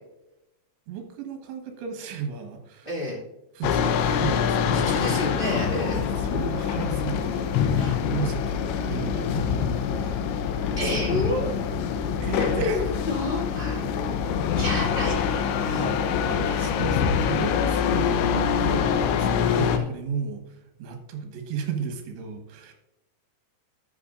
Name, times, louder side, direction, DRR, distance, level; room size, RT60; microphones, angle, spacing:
voice 1, 0.9-2.9 3.5-4.9 6.2-10.6 12.2-12.9 14.6-14.9 16.3-22.7, right 6 dB, 75° right, 5 dB, 3.5 m, -35 dB
voice 2, 2.8-3.2 4.7-6.0 7.8-8.0 10.8-11.5 12.4-13.8 14.6-15.2 15.6-16.0 19.4-19.9, left 1 dB, 20° left, -5 dB, 1.6 m, -30 dB
sound 1, 3.6-19.8, left 7 dB, 85° left, 3.1 m, -25 dB
12.5 x 8.3 x 2.5 m, 0.88 s
omnidirectional pair, 5.2 m